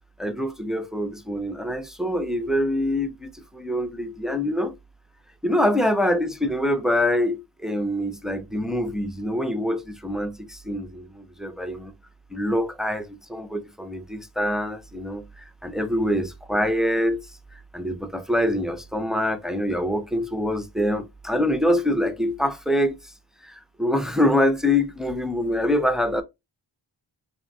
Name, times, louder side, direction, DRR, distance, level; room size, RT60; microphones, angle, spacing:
voice 1, 0.2-4.7 5.4-11.9 12.3-17.2 17.5-23.1 23.4-26.2, left 1 dB, ahead, 0.3 m, -25 dB
3.3 x 2.1 x 2.6 m
wide cardioid pair, 45°, 48 cm